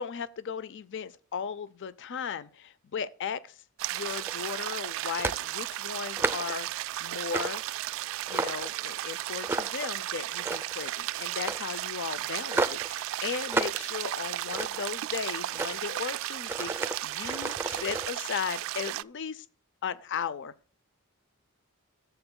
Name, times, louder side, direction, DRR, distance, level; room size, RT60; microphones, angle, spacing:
voice 1, 0.0-3.6 3.9-6.7 7.0-7.6 8.3-19.5 19.8-20.8, left 6 dB, 55° left, 0.5 m, -36 dB
sound 1, 3.8-19.0, right 14 dB, 65° right, 0.3 m, -35 dB
sound 2, 4.1-4.5 5.2-5.4 5.9-6.6 7.3-7.6 8.1-8.7 9.4-9.9 10.3-10.8 11.4-11.7 12.5-12.9 13.5-13.8 14.2-14.9 15.5-15.8 16.4-18.1, right 3 dB, 10° right, 0.5 m, -32 dB
14.5 x 7.9 x 2.3 m
head